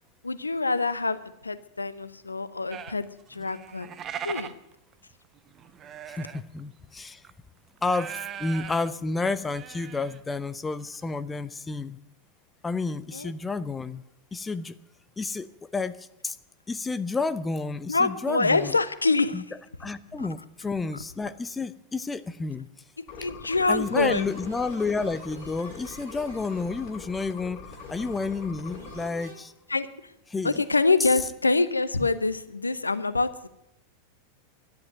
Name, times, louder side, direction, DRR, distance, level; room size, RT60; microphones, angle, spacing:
voice 1, 0.2-3.9 4.2-4.6 13.1-13.3 17.9-19.4 20.2-20.3 23.0-24.2 29.7-30.1 30.4-33.5, left 3 dB, 80° left, 14 dB, 0.8 m, -26 dB
sound 1, 2.7-6.6 7.0-7.3 7.8-8.9 9.3-10.2 10.4-10.5 10.8-11.1, right 9 dB, 30° right, 0.9 m, -40 dB
voice 2, 6.1-7.2 7.8-12.0 12.6-14.0 14.3-14.7 15.2-15.5 15.7-16.4 16.7-18.7 19.3-19.4 19.8-22.7 23.7-27.6 27.9-29.5 30.3-30.6, left 3 dB, 10° left, 14 dB, 0.7 m, -30 dB
sound 2, 23.1-29.1, left 5 dB, 40° left, 2.5 m, -43 dB
sound 3, 23.5-29.3, right 2 dB, 70° right, 4.3 m, -48 dB
12.0 x 10.5 x 9.2 m, 0.84 s
figure-of-eight pair, 90°, 0 cm